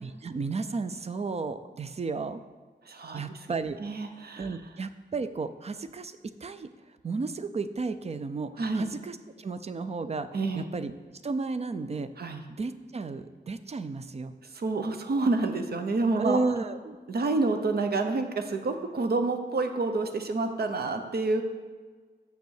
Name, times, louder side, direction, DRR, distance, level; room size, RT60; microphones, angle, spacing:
voice 1, 0.0-2.4 3.1-3.8 4.4-6.7 7.0-10.3 10.5-10.9 11.2-12.1 12.5-14.3 16.2-17.0, right 3 dB, 35° right, 11 dB, 0.5 m, -33 dB
voice 2, 2.9-3.4 3.8-4.5 8.6-8.9 10.3-10.6 12.2-12.4 14.5-16.4 17.1-21.4, right 3 dB, 60° right, 6 dB, 0.8 m, -28 dB
7.2 x 6.8 x 6.4 m, 1.4 s
wide cardioid pair, 150°, 18 cm